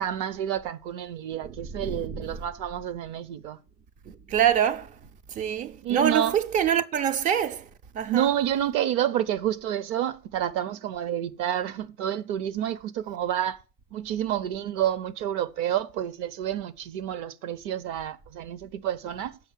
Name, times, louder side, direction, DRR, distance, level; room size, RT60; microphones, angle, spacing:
voice 1, 0.0-3.6 5.8-6.3 8.1-13.6 13.9-19.4, right 11 dB, 40° right, 0.7 m, -29 dB
voice 2, 1.3-2.4 4.1-5.0 5.3-8.3, right 9 dB, 20° right, 0.3 m, -26 dB
7.1 x 5.4 x 7.4 m
hypercardioid pair, 105°, 48 cm